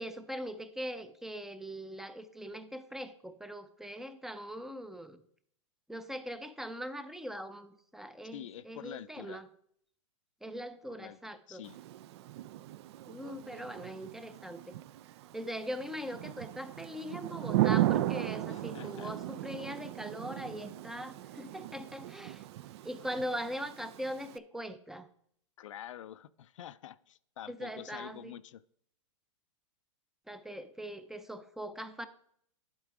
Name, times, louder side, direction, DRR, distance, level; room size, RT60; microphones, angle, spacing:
voice 1, 0.0-5.2 5.9-9.5 10.4-11.6 13.1-14.7 15.3-22.4 22.8-25.1 27.5-28.3 30.3-32.1, equal, ahead, 0.5 m, -41 dB
voice 2, 8.3-9.4 10.9-11.2 11.5-11.8 18.5-19.2 25.6-28.6, left 11 dB, 70° left, 0.4 m, -47 dB
Thunder / Rain, 11.6-24.4, right 14 dB, 55° right, 0.4 m, -36 dB
11.0 x 4.4 x 4.8 m
hypercardioid pair, 120°, 17 cm